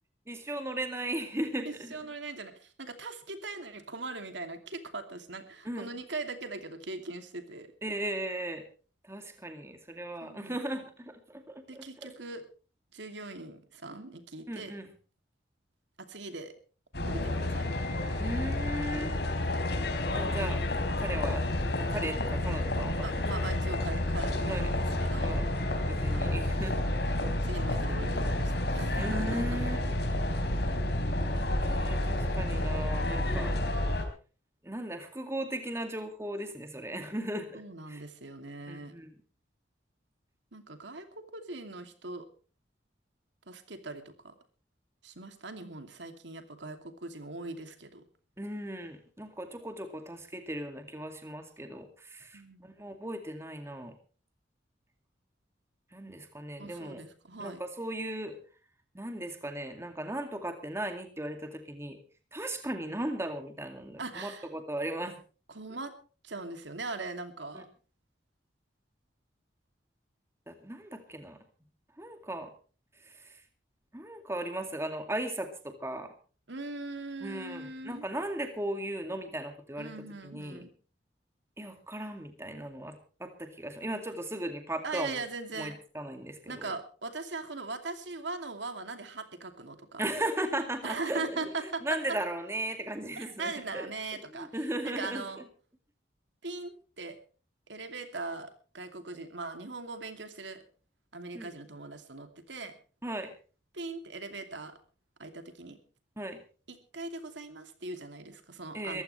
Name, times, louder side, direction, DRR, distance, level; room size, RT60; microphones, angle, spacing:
voice 1, 0.3-2.0 5.6-5.9 7.8-8.6 9.0-12.1 14.5-14.9 18.2-19.2 20.1-20.6 21.0-21.4 21.9-23.3 24.5-24.7 25.2-25.5 25.9-26.9 27.3-27.4 29.0-29.8 31.6-33.5 34.6-37.6 37.9-38.0 38.7-39.1 48.4-53.9 55.9-57.0 57.4-58.4 58.9-62.0 62.3-65.2 67.5-67.6 70.5-71.4 72.0-72.5 73.0-73.4 73.9-76.1 77.2-79.9 80.2-80.6 81.6-85.2 85.6-86.7 90.0-93.9 94.3-95.3 101.3-101.5 103.0-103.3 106.2-106.4 108.7-109.0, right 1 dB, 15° right, 6 dB, 2.3 m, -37 dB
voice 2, 1.6-7.7 10.2-10.6 11.7-12.4 12.9-14.7 16.0-16.5 17.0-17.8 23.0-25.4 26.1-26.3 27.4-29.5 37.5-38.9 40.5-41.1 41.3-42.3 43.5-44.3 45.0-48.0 52.3-52.7 56.6-57.6 64.0-64.5 65.5-65.9 66.2-67.7 76.5-78.1 79.8-80.7 84.8-85.8 86.5-90.0 90.8-91.8 93.2-94.5 94.8-95.4 96.4-97.2 97.7-100.6 101.1-102.7 103.7-104.8 105.2-105.8 106.9-109.0, right 3 dB, 75° right, 7 dB, 2.7 m, -40 dB
sound 1, 16.9-34.0, left 1 dB, 60° left, 4.0 m, -30 dB
23.0 x 15.0 x 3.3 m, 0.38 s
head